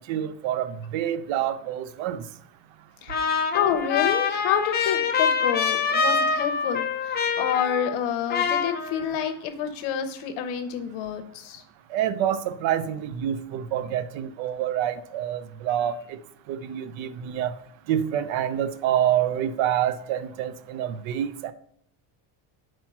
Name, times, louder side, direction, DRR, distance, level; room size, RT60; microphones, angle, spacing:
voice 1, 0.1-2.2 11.9-16.2 16.5-17.5 17.9-21.5, right 10 dB, 75° right, 13 dB, 0.7 m, -27 dB
Trumpet, 3.1-8.0 8.3-9.3, left 5 dB, 20° left, 0.4 m, -25 dB
voice 2, 3.5-11.6, left 8 dB, 70° left, 7 dB, 0.8 m, -28 dB
4.5 x 4.4 x 5.8 m, 0.64 s
cardioid pair, 170°, 47 cm